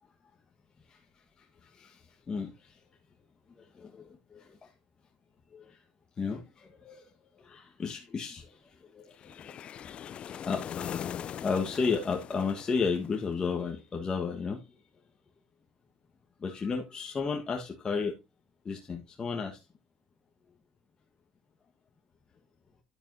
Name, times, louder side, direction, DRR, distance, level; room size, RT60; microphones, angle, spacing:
voice 1, 2.3-2.7 3.8-4.1 4.3-4.5 5.5-5.8 6.2-7.0 7.4-8.5 9.2-9.9 10.3-11.1 11.4-14.6 16.4-18.1 18.6-19.6, left 5 dB, 35° left, 1.5 m, -33 dB
sound 1, 9.2-13.4, left 9 dB, 50° left, 0.4 m, -40 dB
10.5 x 8.7 x 2.7 m
supercardioid pair, 75°, 2 cm